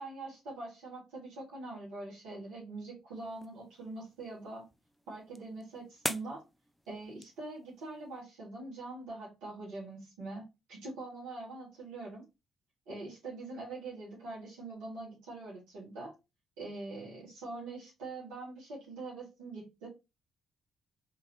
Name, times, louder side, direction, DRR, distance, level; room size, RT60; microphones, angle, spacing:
voice 1, 0.0-4.6 5.1-6.4 6.9-10.4 10.7-12.2 12.9-16.1 16.6-19.9, right 2 dB, 70° right, -7 dB, 2.1 m, -43 dB
sound 1, 3.1-8.2, equal, ahead, 0.5 m, -45 dB
3.8 x 3.7 x 2.8 m, 0.24 s
figure-of-eight pair, 40°, 0 cm